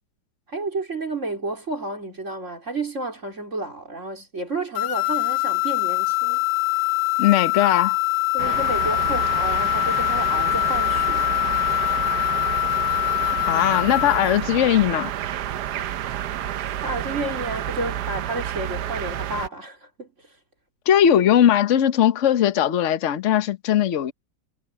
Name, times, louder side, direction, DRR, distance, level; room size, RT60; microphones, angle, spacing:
voice 1, 0.5-6.4 8.3-11.4 16.8-20.4, right 2 dB, 40° right, 4.5 m, -31 dB
sound 1, 4.7-14.3, left 22 dB, 80° left, 1.8 m, -23 dB
voice 2, 7.2-8.0 13.5-15.1 20.9-24.1, left 10 dB, 50° left, 1.1 m, -19 dB
sound 2, 8.4-19.5, right 11 dB, 65° right, 1.2 m, -29 dB
omnidirectional pair, 2.1 m